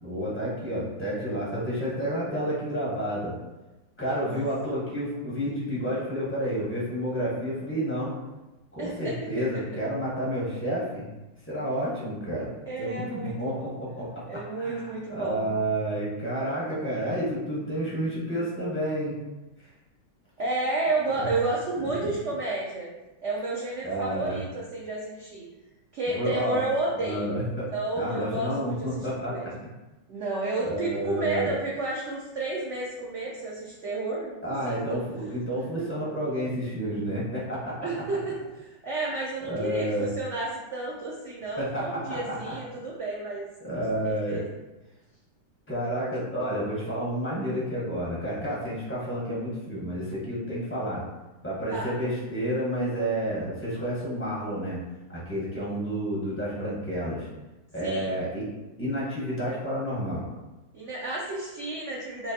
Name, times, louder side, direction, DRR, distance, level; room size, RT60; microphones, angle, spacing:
voice 1, 0.0-3.3 4.0-8.1 8.7-11.0 11.5-12.5 12.8-14.2 14.6-19.2 21.1-21.3 22.0-22.1 23.8-24.4 26.1-26.7 27.0-27.7 28.0-29.5 30.6-31.6 34.4-37.9 39.4-40.1 41.6-42.5 43.6-44.4 45.7-51.0 51.4-54.8 55.1-57.3 57.7-58.4 58.8-60.2, equal, 15° left, -8 dB, 0.4 m, -30 dB
voice 2, 8.8-9.1 12.7-13.7 14.3-15.5 20.4-22.9 23.2-25.5 25.9-27.3 27.7-28.9 29.2-29.5 30.1-35.0 35.8-35.9 37.8-38.4 38.6-43.5 44.0-44.4 51.7-51.9 57.8-58.2 60.7-62.3, right 2 dB, 85° right, -4 dB, 0.6 m, -31 dB
4.3 x 2.4 x 2.7 m, 1.1 s
omnidirectional pair, 2.0 m